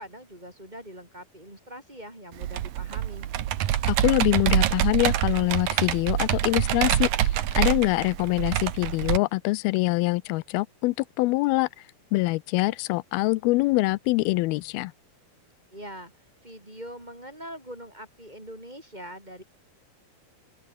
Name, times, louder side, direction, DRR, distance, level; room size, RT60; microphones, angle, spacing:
voice 1, 0.0-3.3 15.7-16.1 16.4-19.4, equal, 10° right, 4.2 m, -42 dB
Computer keyboard, 2.4-9.2, right 12 dB, 70° right, 3.0 m, -25 dB
voice 2, 3.9-7.1 7.5-11.7 12.1-14.9, left 21 dB, 90° left, 2.5 m, -24 dB
open air
omnidirectional pair, 4.3 m